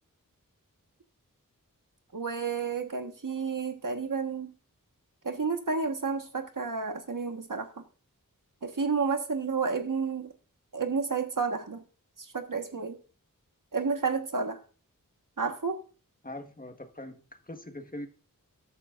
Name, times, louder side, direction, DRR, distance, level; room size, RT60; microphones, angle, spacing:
voice 1, 2.1-4.5 5.2-7.8 8.6-10.3 10.7-11.8 12.2-13.0 13.7-14.6 15.4-15.8, right 5 dB, 70° right, 1.4 m, -31 dB
voice 2, 16.2-18.1, left 1 dB, 25° left, 1.4 m, -42 dB
13.5 x 9.5 x 2.5 m
wide cardioid pair, 45°, 34 cm